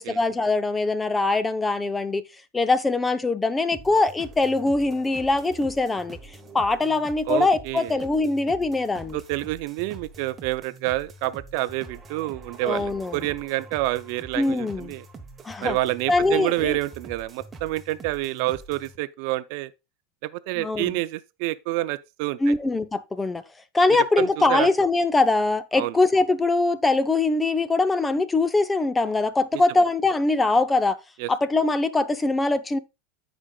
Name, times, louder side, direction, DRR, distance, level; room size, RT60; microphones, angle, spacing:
voice 1, 0.0-2.2 2.5-6.2 6.5-9.2 12.6-13.3 14.4-14.9 15.4-15.8 16.1-16.8 20.6-20.9 22.4-23.4 23.7-31.0 31.3-32.8, left 3 dB, 15° left, 0.6 m, -22 dB
sound 1, 3.7-19.0, right 3 dB, 20° right, 1.1 m, -45 dB
voice 2, 7.3-8.0 9.1-15.0 15.6-19.7 20.2-22.5 24.2-24.7 25.7-26.0 29.5-29.6 31.2-31.3, right 17 dB, 65° right, 0.4 m, -28 dB
15.0 x 5.1 x 2.3 m
supercardioid pair, 125°, 0 cm